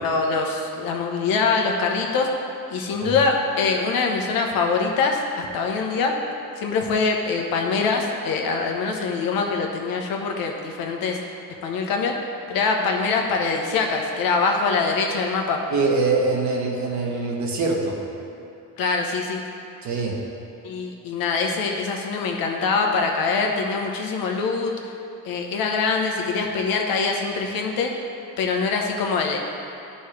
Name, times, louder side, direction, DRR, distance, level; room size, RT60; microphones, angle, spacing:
voice 1, 0.0-2.3 2.7-6.2 6.6-11.2 11.6-12.1 12.5-15.6 18.8-19.4 20.6-24.7 25.2-28.0 28.4-29.4, left 4 dB, 85° left, 1 dB, 1.0 m, -24 dB
voice 2, 15.7-18.0 19.8-20.2, right 3 dB, 55° right, -1 dB, 1.3 m, -23 dB
11.5 x 5.4 x 3.2 m, 2.7 s
cardioid pair, 135°, 34 cm